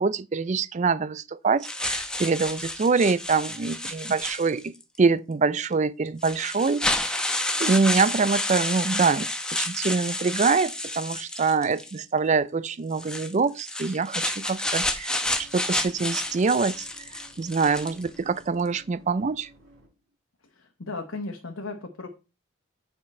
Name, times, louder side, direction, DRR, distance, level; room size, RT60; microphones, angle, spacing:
voice 1, 0.0-7.1 7.6-16.9 17.4-19.5, right 4 dB, 30° right, 0.4 m, -25 dB
sound 1, 1.6-4.8 5.6-5.7 6.2-12.0 12.9-18.1, left 1 dB, 5° left, 0.9 m, -30 dB
sound 2, 14.9-20.1, right 1 dB, 55° right, 5.0 m, -56 dB
voice 2, 20.6-22.1, left 3 dB, 65° left, 1.2 m, -35 dB
8.9 x 5.9 x 4.3 m
head